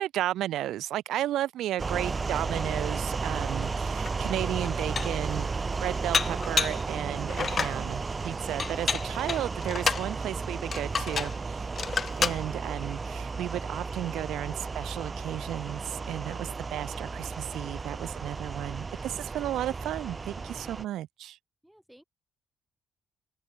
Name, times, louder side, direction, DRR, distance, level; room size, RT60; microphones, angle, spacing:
voice 1, 0.0-11.7 12.2-21.4, right 13 dB, 85° right, 0.5 m, -34 dB
sound 1, 1.8-20.8, right 4 dB, 30° right, 1.1 m, -34 dB
Dishes pots and pans, 4.1-4.2 4.6-5.3 6.1-6.8 7.3-7.8 8.6-10.1 10.7-11.4 11.8-12.4, left 6 dB, 45° left, 1.5 m, -29 dB
voice 2, 21.6-22.0, equal, 5° right, 7.9 m, -58 dB
open air
cardioid pair, 90°, 0 cm